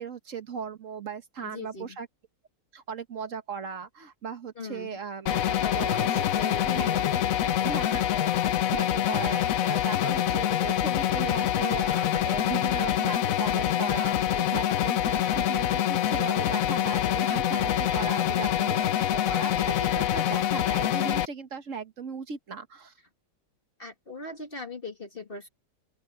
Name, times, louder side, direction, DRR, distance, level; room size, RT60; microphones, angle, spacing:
voice 1, 0.0-2.1 2.7-7.0 7.6-8.3 8.7-22.9, right 6 dB, 50° right, 1.4 m, -37 dB
voice 2, 1.4-2.0 4.6-5.0 5.5-8.0 18.3-18.6 23.8-25.5, left 2 dB, 30° left, 2.1 m, -40 dB
sound 1, 5.3-21.3, left 11 dB, 65° left, 1.0 m, -25 dB
open air
omnidirectional pair, 1.8 m